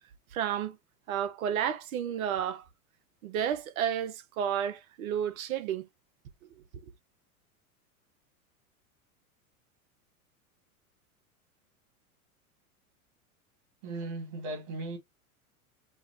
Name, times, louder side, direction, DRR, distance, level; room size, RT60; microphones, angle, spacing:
voice 1, 0.3-0.8 1.1-2.6 3.2-5.9 6.4-6.9, right 9 dB, 70° right, 1.0 m, -32 dB
voice 2, 13.8-15.0, right 2 dB, 55° right, 2.5 m, -37 dB
5.1 x 2.3 x 4.1 m
hypercardioid pair, 95°, 43 cm